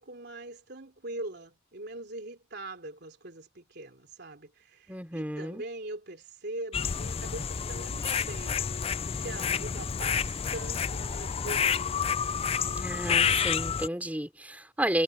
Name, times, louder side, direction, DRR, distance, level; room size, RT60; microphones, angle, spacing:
voice 1, 0.0-8.7 9.1-12.0, right 2 dB, 55° right, 3.4 m, -42 dB
voice 2, 4.9-5.6 12.7-15.0, right 1 dB, 10° right, 3.7 m, -32 dB
sound 1, 6.7-13.9, left 7 dB, 30° left, 0.4 m, -29 dB
head